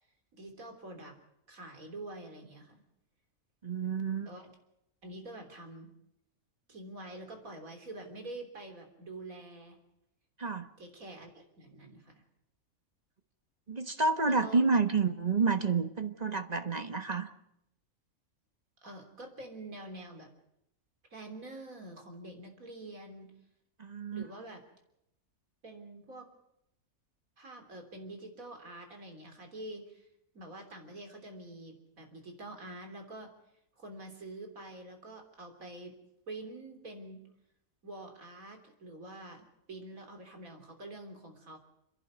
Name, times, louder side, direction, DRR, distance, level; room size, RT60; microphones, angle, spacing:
voice 1, 0.3-1.2 1.5-2.8 4.3-4.5 5.0-5.9 6.7-9.8 10.8-12.2 14.3-14.8 18.8-20.3 21.1-23.3 24.1-24.6 25.6-26.3 27.4-30.1 30.3-33.3 33.8-36.0 36.3-37.2 37.8-41.6, right 2 dB, 70° right, 4 dB, 3.9 m, -46 dB
voice 2, 3.6-4.3 10.4-10.7 13.7-17.3 23.8-24.2, right 4 dB, 30° right, 8 dB, 1.2 m, -29 dB
29.0 x 11.0 x 9.5 m, 0.82 s
omnidirectional pair, 1.5 m